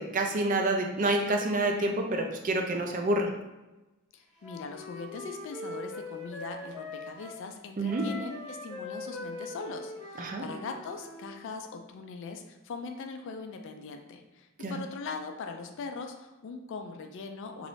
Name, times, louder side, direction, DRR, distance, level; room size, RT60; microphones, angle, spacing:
voice 1, 0.0-3.3 7.8-8.1 10.2-10.5 14.6-14.8, right 2 dB, 35° right, 3 dB, 0.4 m, -28 dB
voice 2, 4.1-17.7, left 4 dB, 60° left, 5 dB, 0.3 m, -41 dB
Wind instrument woodwind instrument, 4.4-7.4 7.8-11.3, left 2 dB, 30° left, 0.8 m, -42 dB
3.1 x 2.5 x 3.1 m, 1.1 s
head